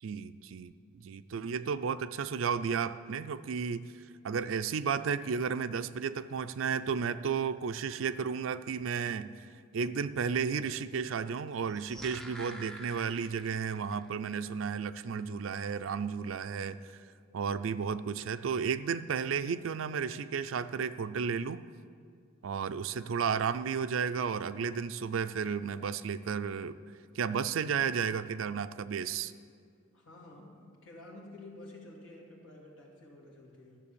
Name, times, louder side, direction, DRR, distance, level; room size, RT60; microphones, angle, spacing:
voice 1, 0.0-9.3 9.7-17.0 17.3-21.6 22.4-26.8 27.1-29.3, right 6 dB, 80° right, 13 dB, 0.4 m, -33 dB
sound 1, 11.5-14.0 14.3-14.4, right 1 dB, ahead, 0.7 m, -47 dB
voice 2, 29.9-33.8, left 2 dB, 80° left, -2 dB, 2.4 m, -50 dB
12.5 x 7.1 x 6.9 m, 2.2 s
head